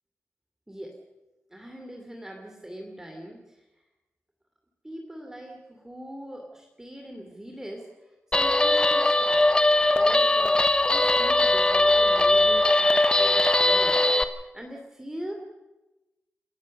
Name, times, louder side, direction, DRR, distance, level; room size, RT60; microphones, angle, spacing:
voice 1, 1.5-3.4 4.8-7.9 8.3-9.4 9.9-14.0 14.4-15.4, equal, 10° right, 2 dB, 2.7 m, -41 dB
Guitar, 8.3-14.2, left 2 dB, 20° left, 1.0 m, -20 dB
28.0 x 14.5 x 6.5 m, 1.0 s
wide cardioid pair, 130°, 4 cm